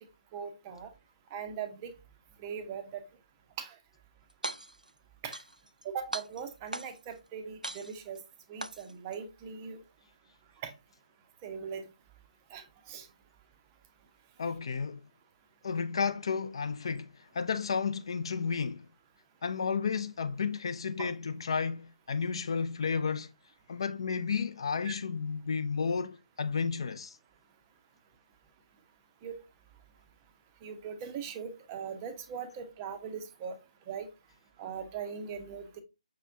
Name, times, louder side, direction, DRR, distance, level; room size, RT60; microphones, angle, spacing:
voice 1, 0.3-0.9 1.3-1.9 2.4-3.0 3.6-3.8 5.2-5.4 5.8-8.2 8.5-9.8 10.6-10.7 11.4-11.9 12.5-13.1 21.0-21.1 24.8-24.9 29.2-29.4 30.6-33.6 33.9-34.1 34.6-35.8, right 7 dB, 15° right, 0.5 m, -40 dB
sound 1, 4.3-4.9 5.3-5.8 6.1-7.1 7.6-8.2 8.6-9.2, right 1 dB, 90° right, 0.4 m, -39 dB
voice 2, 14.4-15.0 15.6-18.9 19.4-23.3 23.7-27.2, left 5 dB, 40° left, 0.3 m, -32 dB
5.9 x 3.0 x 2.6 m
figure-of-eight pair, 145°, 4 cm